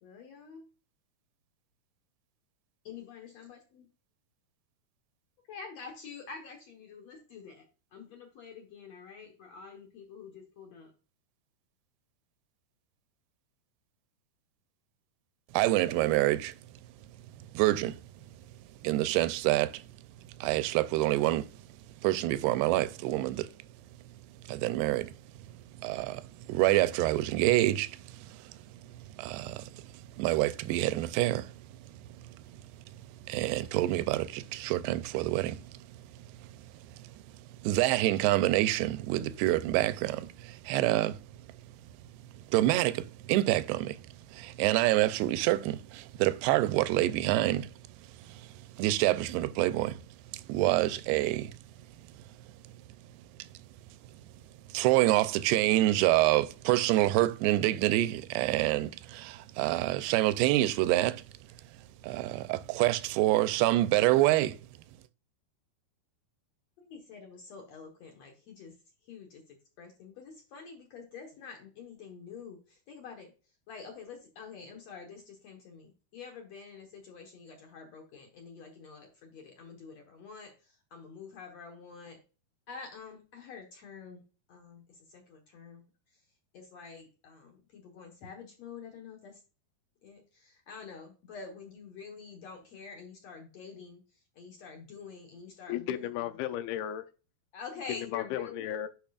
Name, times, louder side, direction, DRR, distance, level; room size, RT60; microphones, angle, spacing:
voice 1, 0.0-0.7 2.8-3.9 5.5-10.9 66.8-68.7 69.0-73.3 73.7-82.2 82.7-84.2 84.5-85.8 86.5-89.4 90.0-96.1 97.5-98.7, left 5 dB, 65° left, 1.7 m, -47 dB
voice 2, 15.5-16.6 17.5-18.0 18.8-19.8 20.4-21.5 22.0-23.5 24.5-25.2 25.8-28.5 28.9-31.5 32.2-32.4 33.3-35.9 36.4-36.5 37.0-37.1 37.6-41.2 42.5-44.0 44.3-47.7 48.2-48.5 48.8-50.0 50.3-51.5 53.4-53.5 54.7-61.2 62.0-64.6, right 16 dB, 85° right, 2.6 m, -27 dB
voice 3, 95.7-97.1 98.1-98.9, left 11 dB, 80° left, 2.4 m, -34 dB
10.5 x 5.3 x 2.4 m
omnidirectional pair, 4.6 m